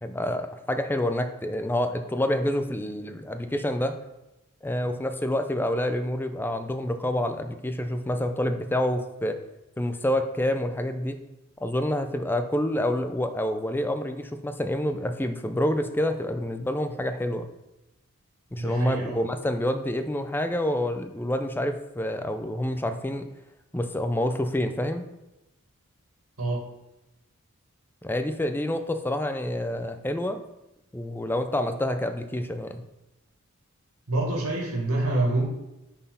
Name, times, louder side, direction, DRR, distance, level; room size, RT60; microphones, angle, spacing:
voice 1, 0.0-4.0 4.6-9.4 9.8-11.2 11.6-17.5 18.5-23.3 23.7-25.0 28.0-30.4 30.9-32.8, left 1 dB, 10° left, 8 dB, 0.4 m, -27 dB
voice 2, 18.6-19.2 26.4-26.6 34.1-35.5, right 2 dB, 85° right, -2 dB, 1.9 m, -26 dB
5.5 x 4.3 x 5.5 m, 0.95 s
head